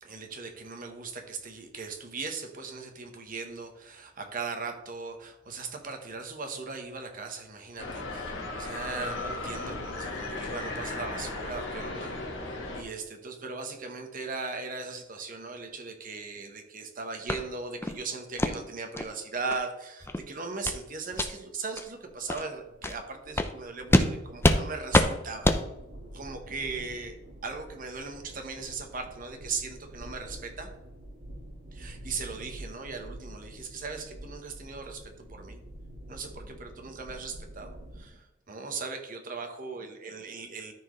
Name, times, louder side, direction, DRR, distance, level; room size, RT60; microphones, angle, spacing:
voice 1, 0.0-25.5 26.1-27.2 27.4-30.7 31.7-35.6 36.1-40.7, right 4 dB, 45° right, 4 dB, 1.1 m, -38 dB
sound 1, 7.8-12.8, left 2 dB, 75° left, 1.5 m, -36 dB
sound 2, 17.3-17.4 17.8-18.0 18.4-18.5 19.0-19.1 19.5-19.6 20.0-20.2 20.6-20.8 21.1-21.3 21.8-21.9 22.3-22.4 22.8-23.0 23.4-23.5 23.9-24.1 24.4-24.6 24.9-25.1 25.4-25.6, left 1 dB, 10° left, 0.5 m, -24 dB
sound 3, 21.7-38.1, right 1 dB, 80° right, 1.9 m, -47 dB
13.5 x 4.5 x 3.2 m, 0.90 s
head